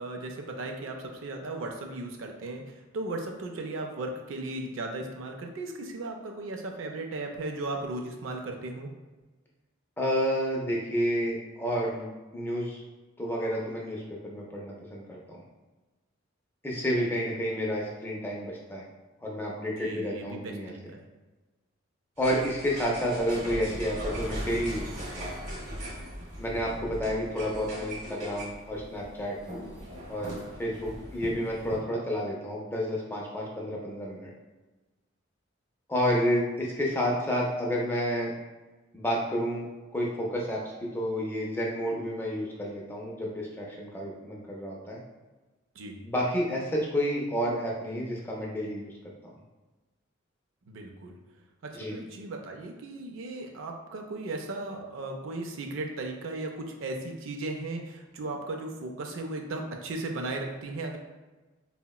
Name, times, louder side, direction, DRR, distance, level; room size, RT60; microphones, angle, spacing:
voice 1, 0.0-8.9 19.8-21.0 45.8-46.0 50.7-51.2 51.6-61.0, right 2 dB, 75° right, 3 dB, 0.4 m, -36 dB
voice 2, 10.0-12.8 13.2-15.4 16.6-18.9 19.2-20.7 22.2-25.4 26.4-29.4 30.1-34.3 35.9-38.3 38.9-39.7 39.9-45.0 46.0-48.9 51.7-51.9, equal, 10° left, -3 dB, 0.4 m, -30 dB
sound 1, 22.2-31.8, equal, 35° right, 0.7 m, -39 dB
3.7 x 2.1 x 2.2 m, 1.2 s
head